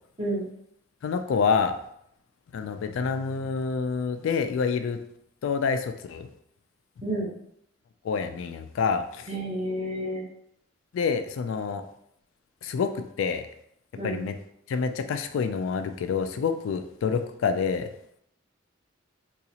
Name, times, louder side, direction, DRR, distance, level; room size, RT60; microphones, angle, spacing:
voice 1, 1.0-1.7 2.5-5.0 5.4-6.3 8.0-9.3 10.9-11.8 12.6-13.5 14.0-14.3 14.7-17.9, left 5 dB, 85° left, 8 dB, 0.3 m, -27 dB
voice 2, 7.0-7.3 9.3-10.2 14.0-14.2, right 1 dB, 30° right, -4 dB, 0.8 m, -30 dB
3.8 x 2.4 x 2.8 m, 0.72 s
head